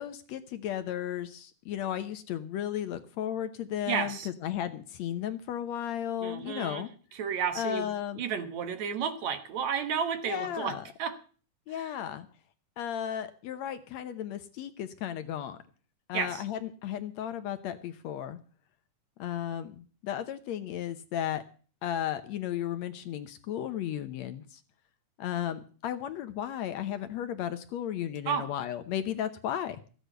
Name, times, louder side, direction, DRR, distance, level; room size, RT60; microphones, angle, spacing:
voice 1, 0.0-4.2 4.4-6.9 7.6-8.2 10.2-10.9 11.7-12.3 12.8-15.6 16.1-18.4 19.2-21.4 21.8-24.6 25.2-29.8, left 10 dB, 70° left, 11 dB, 1.9 m, -34 dB
voice 2, 3.9-4.3 6.2-6.8 7.1-7.9 8.2-11.2 11.7-12.0 16.1-16.4 28.3-28.5, right 7 dB, 65° right, 10 dB, 2.5 m, -32 dB
14.5 x 8.3 x 7.9 m, 0.40 s
omnidirectional pair, 3.6 m